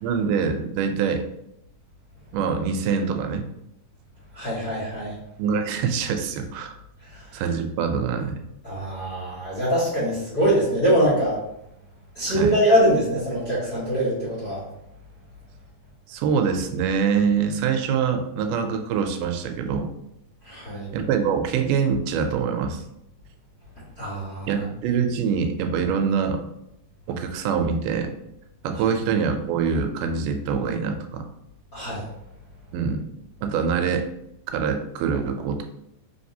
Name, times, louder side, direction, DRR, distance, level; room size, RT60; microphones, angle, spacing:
voice 1, 0.0-1.3 2.3-3.5 5.4-6.7 7.3-8.4 12.3-12.5 16.1-19.9 20.9-22.8 24.5-26.5 27.1-28.1 28.6-31.2 32.7-33.1 33.4-34.1 34.5-35.6, right 6 dB, 85° right, 6 dB, 2.1 m, -24 dB
voice 2, 4.3-5.2 7.1-7.4 8.6-11.4 12.1-14.6 20.4-20.9 24.0-24.6 31.7-32.1, equal, 40° left, -9 dB, 1.3 m, -23 dB
4.7 x 3.2 x 2.7 m, 0.82 s
omnidirectional pair, 3.7 m